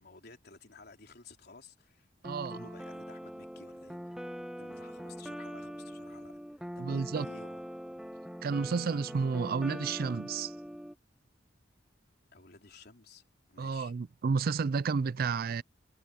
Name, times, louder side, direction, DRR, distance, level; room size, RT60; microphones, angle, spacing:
voice 1, 0.0-2.1 2.5-4.2 4.6-7.6 12.3-13.2 13.5-14.0, left 3 dB, 60° left, 3.9 m, -54 dB
sound 1, 2.2-11.0, equal, 5° right, 1.2 m, -42 dB
voice 2, 2.2-2.6 6.8-7.3 8.4-10.5 13.6-15.6, right 5 dB, 55° right, 0.4 m, -31 dB
head